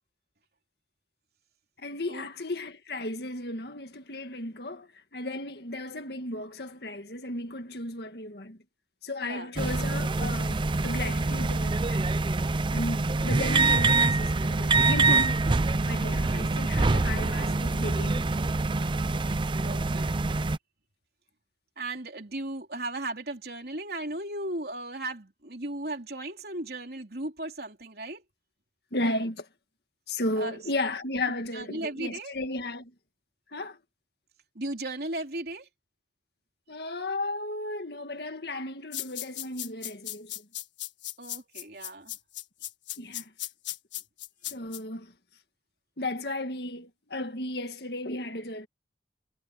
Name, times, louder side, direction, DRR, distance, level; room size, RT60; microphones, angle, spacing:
voice 1, 1.8-8.6 9.0-12.0 12.7-15.4 15.9-18.3 28.9-29.5 30.1-32.9 33.5-33.8 36.7-40.5 43.0-43.3 44.5-45.1 46.0-48.7, left 2 dB, 60° left, 1.9 m, -34 dB
sound 1, 9.6-20.6, right 3 dB, 25° right, 0.5 m, -25 dB
voice 2, 16.0-16.6 19.6-20.2 21.8-28.2 30.4-30.6 31.5-32.3 34.6-35.7 41.2-42.2, right 2 dB, 60° right, 3.6 m, -36 dB
sound 2, 38.9-44.8, left 14 dB, 90° left, 1.6 m, -37 dB
head